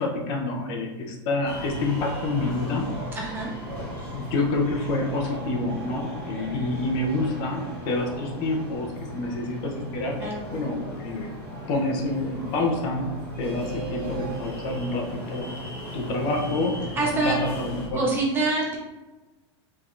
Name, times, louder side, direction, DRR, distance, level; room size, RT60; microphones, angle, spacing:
voice 1, 0.0-2.9 4.1-11.3 11.7-15.5 15.9-16.8 17.2-18.0, left 2 dB, 30° left, 1 dB, 0.6 m, -28 dB
sound 1, 1.4-17.9, equal, 10° left, 1.1 m, -36 dB
voice 2, 3.1-3.5 10.2-10.4 17.0-17.4 17.9-18.8, right 3 dB, 15° right, -2 dB, 0.4 m, -25 dB
5.0 x 3.5 x 2.4 m, 1.1 s
supercardioid pair, 170°, 15 cm